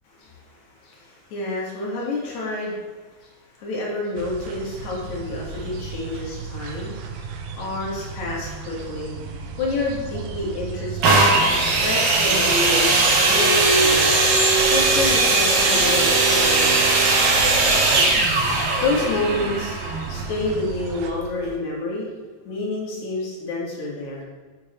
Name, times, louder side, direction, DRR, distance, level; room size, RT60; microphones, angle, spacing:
voice 1, 0.3-2.8 3.2-9.3 9.6-11.2 11.8-12.9 13.2-14.2 14.7-17.1 18.8-19.8 20.1-22.1 22.5-24.2, left 2 dB, 80° left, -4 dB, 2.9 m, -29 dB
sound 1, 4.2-21.1, right 4 dB, 80° right, 2.0 m, -35 dB
sound 2, 11.0-20.7 21.4-21.5, right 3 dB, 65° right, 1.4 m, -19 dB
8.2 x 4.7 x 2.9 m, 1.4 s
omnidirectional pair, 3.4 m